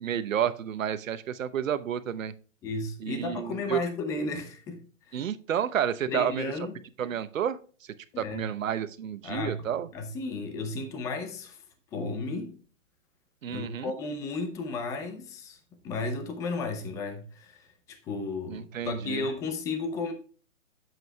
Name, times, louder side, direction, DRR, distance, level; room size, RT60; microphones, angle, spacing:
voice 1, 0.0-2.3 3.0-3.8 5.1-6.5 7.0-7.6 8.2-9.9 13.4-13.9 18.5-19.2, right 9 dB, 80° right, 0.9 m, -30 dB
voice 2, 2.6-5.2 6.1-6.7 8.1-8.5 9.2-11.6 11.9-12.6 13.5-15.6 15.8-20.1, left 3 dB, 10° left, 0.5 m, -34 dB
9.3 x 7.6 x 2.2 m
hypercardioid pair, 150°, 39 cm